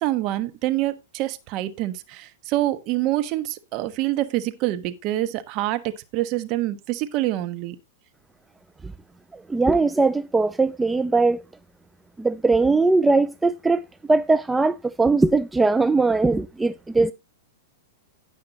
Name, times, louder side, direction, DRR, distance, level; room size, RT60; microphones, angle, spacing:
voice 1, 0.0-5.8 6.1-7.7, right 15 dB, 45° right, 1.3 m, -26 dB
voice 2, 9.3-11.4 12.2-13.8 14.1-17.1, right 3 dB, 10° right, 0.4 m, -20 dB
17.0 x 5.8 x 2.9 m
hypercardioid pair, 105°, 0 cm